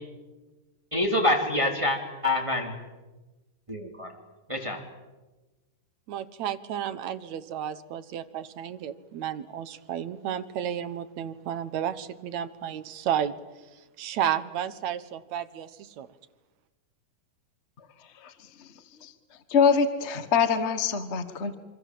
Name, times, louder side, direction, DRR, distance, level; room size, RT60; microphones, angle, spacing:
voice 1, 0.9-2.7 3.7-4.1 4.5-4.8, left 1 dB, 10° right, 3 dB, 2.7 m, -26 dB
voice 2, 6.1-13.3 14.0-16.1, right 10 dB, 65° right, 12 dB, 2.1 m, -32 dB
voice 3, 19.5-21.5, left 6 dB, 55° left, 10 dB, 0.7 m, -24 dB
27.0 x 25.0 x 7.6 m, 1.1 s
omnidirectional pair, 3.8 m